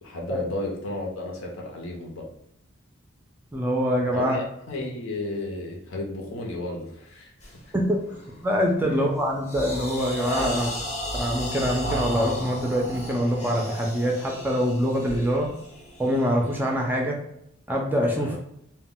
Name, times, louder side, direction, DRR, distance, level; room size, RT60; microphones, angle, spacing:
voice 1, 0.0-2.3 4.1-7.3 8.8-9.0 18.1-18.4, left 1 dB, 80° left, -1 dB, 0.7 m, -33 dB
voice 2, 3.5-4.4 7.7-8.0 8.4-10.7 11.1-15.5 16.0-17.2 17.7-18.3, equal, 10° right, 0 dB, 0.4 m, -24 dB
sound 1, 7.4-7.6 8.1-8.4 8.9-17.0, equal, 35° left, 0.6 m, -34 dB
2.2 x 2.1 x 3.8 m, 0.75 s
head